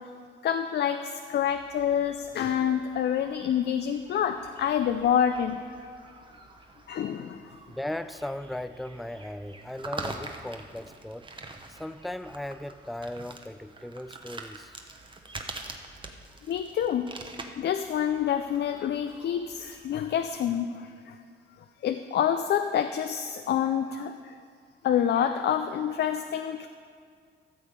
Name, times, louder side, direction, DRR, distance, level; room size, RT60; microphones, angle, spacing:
voice 1, 0.4-5.6 6.9-7.5 16.5-17.1 17.6-21.2 21.8-24.4 24.8-26.7, left 9 dB, 55° left, 8 dB, 0.5 m, -27 dB
sound 1, 1.4-20.4, right 3 dB, 25° right, 1.0 m, -45 dB
voice 2, 7.7-11.3 11.7-14.8, left 1 dB, ahead, 13 dB, 0.3 m, -37 dB
13.5 x 7.1 x 5.1 m, 2.2 s
cardioid pair, 90°, 20 cm